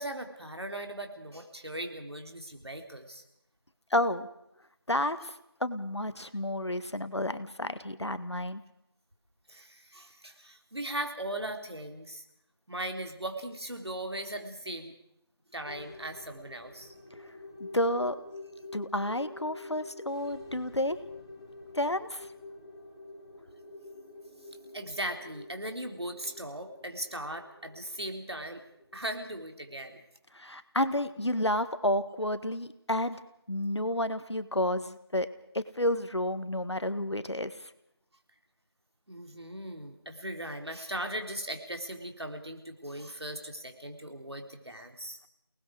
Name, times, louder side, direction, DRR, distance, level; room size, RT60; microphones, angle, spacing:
voice 1, 0.0-3.2 9.5-12.2 12.7-14.9 15.5-16.9 24.7-28.6 28.9-30.0 39.1-45.2, right 1 dB, 70° right, 4 dB, 3.5 m, -38 dB
voice 2, 3.9-4.3 4.9-5.3 5.6-8.6 17.6-18.1 18.7-21.0 21.7-22.3 30.3-33.2 33.5-35.3 35.5-37.5, left 1 dB, 80° left, 12 dB, 1.7 m, -30 dB
sound 1, 15.6-29.2, left 2 dB, 15° left, 2.0 m, -48 dB
29.0 x 19.5 x 4.9 m, 0.80 s
figure-of-eight pair, 170°, 14 cm